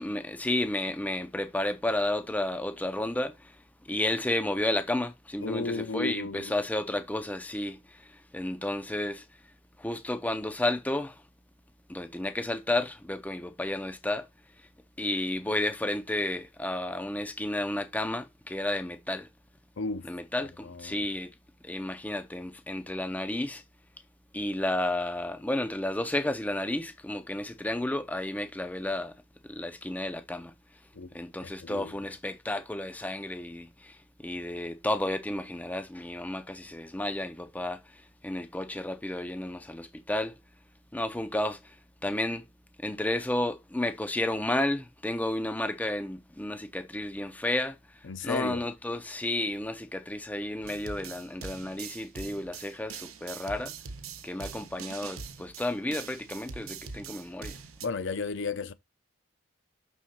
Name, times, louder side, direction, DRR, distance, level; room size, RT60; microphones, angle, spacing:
voice 1, 0.0-3.6 3.8-9.2 9.8-11.2 11.9-14.3 15.0-19.3 20.0-21.3 21.6-23.6 24.3-29.1 29.5-30.5 31.1-40.4 40.9-41.8 42.0-42.5 42.8-47.8 48.2-53.7 54.2-57.6, left 1 dB, 5° left, 0.5 m, -32 dB
voice 2, 5.4-6.5 19.8-20.1 20.4-21.0 30.9-31.1 31.4-31.9 48.1-48.6 57.8-58.7, left 3 dB, 60° left, 0.6 m, -34 dB
sound 1, 50.6-57.9, right 5 dB, 90° right, 0.9 m, -43 dB
6.3 x 3.8 x 5.5 m
head